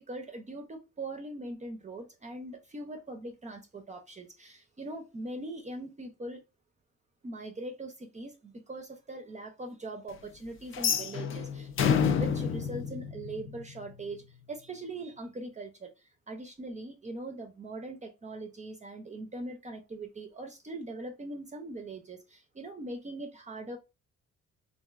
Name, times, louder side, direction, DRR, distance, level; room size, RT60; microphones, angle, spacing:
voice 1, 0.0-6.4 7.2-23.8, right 2 dB, 25° right, 0.5 m, -41 dB
sound 1, 10.7-13.8, left 7 dB, 45° left, 0.4 m, -29 dB
3.0 x 2.5 x 2.3 m
cardioid pair, 90°, 30 cm